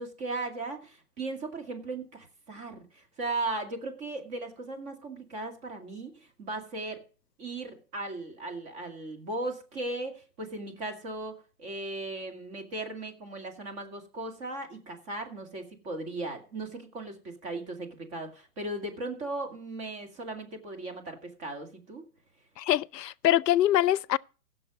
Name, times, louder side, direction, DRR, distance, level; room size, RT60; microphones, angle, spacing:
voice 1, 0.0-7.0 7.4-11.3 11.6-22.0, right 2 dB, 20° right, 2.3 m, -37 dB
voice 2, 22.6-24.2, left 12 dB, 80° left, 0.6 m, -24 dB
16.0 x 6.6 x 5.1 m
hypercardioid pair, 160°, 48 cm